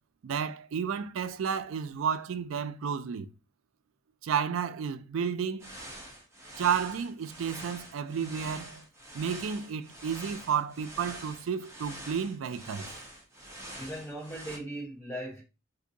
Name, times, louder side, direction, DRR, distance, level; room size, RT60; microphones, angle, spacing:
voice 1, 0.2-3.3 4.2-5.7 6.6-8.9 9.1-12.9, right 7 dB, 75° right, 0.4 m, -32 dB
sound 1, 5.6-14.6, right 1 dB, 15° right, 0.9 m, -45 dB
voice 2, 13.8-15.4, right 1 dB, 10° left, 1.0 m, -38 dB
2.6 x 2.6 x 3.8 m
head